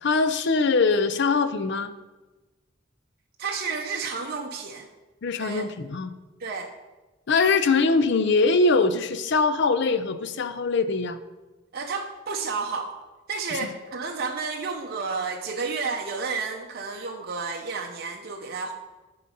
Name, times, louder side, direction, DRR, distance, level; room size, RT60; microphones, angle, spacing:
voice 1, 0.0-1.9 5.2-6.1 7.3-11.2 13.5-13.7, left 4 dB, 60° left, 11 dB, 0.5 m, -22 dB
voice 2, 3.4-4.9 5.4-5.7 6.4-6.7 11.7-12.9 13.3-18.7, right 4 dB, 50° right, 2 dB, 0.7 m, -31 dB
10.5 x 4.0 x 5.4 m, 1.2 s
head